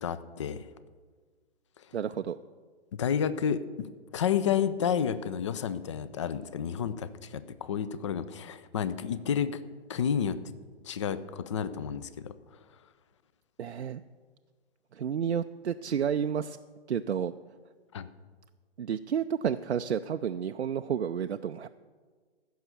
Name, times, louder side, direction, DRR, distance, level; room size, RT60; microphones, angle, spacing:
voice 1, 0.0-0.7 2.9-3.9 4.1-9.6 9.9-10.4 10.8-12.3 17.9-18.1, left 8 dB, 30° left, 15 dB, 0.4 m, -30 dB
voice 2, 1.9-2.4 13.6-14.0 14.9-16.6 16.9-17.3 18.8-21.7, right 8 dB, 75° right, 8 dB, 0.5 m, -31 dB
15.0 x 6.3 x 6.9 m, 1.5 s
figure-of-eight pair, 125°, 33 cm